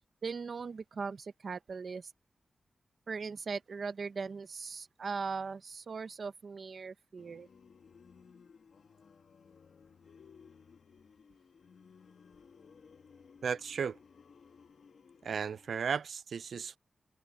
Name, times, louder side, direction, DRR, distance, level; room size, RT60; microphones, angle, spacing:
voice 1, 0.2-2.1 3.1-7.5, right 5 dB, 55° right, 0.9 m, -39 dB
sound 1, 7.2-15.7, left 6 dB, 75° left, 1.9 m, -59 dB
voice 2, 13.4-14.0 15.2-16.8, right 6 dB, 75° right, 0.3 m, -35 dB
wide cardioid pair, 155°, 0 cm